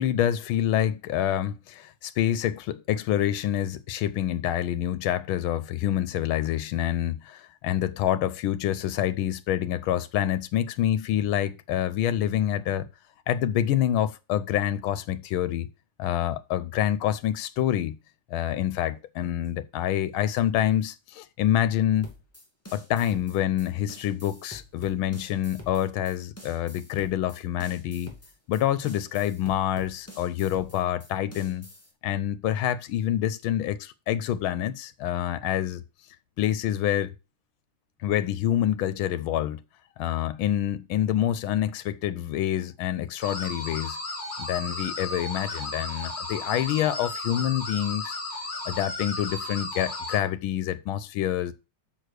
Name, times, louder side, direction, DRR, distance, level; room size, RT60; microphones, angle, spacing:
voice 1, 0.0-12.9 13.3-15.7 16.0-17.9 18.3-22.1 22.7-28.1 28.5-31.7 32.0-35.8 36.4-37.1 38.0-39.6 40.0-44.0 44.4-48.2 48.6-51.5, left 11 dB, 90° left, 1.5 m, -27 dB
sound 1, 22.0-31.9, left 1 dB, 5° left, 2.0 m, -47 dB
sound 2, 43.2-50.2, left 2 dB, 30° left, 3.6 m, -34 dB
6.6 x 6.2 x 6.4 m
omnidirectional pair, 2.2 m